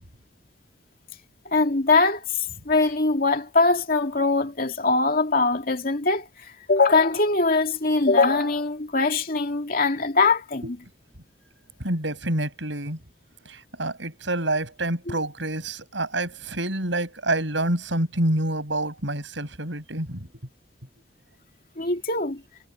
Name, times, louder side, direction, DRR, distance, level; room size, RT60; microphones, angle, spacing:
voice 1, 1.5-10.8 15.1-15.2 21.8-22.4, left 3 dB, 50° left, 2.7 m, -22 dB
voice 2, 11.8-13.0 13.5-20.3, right 1 dB, 75° right, 7.6 m, -27 dB
head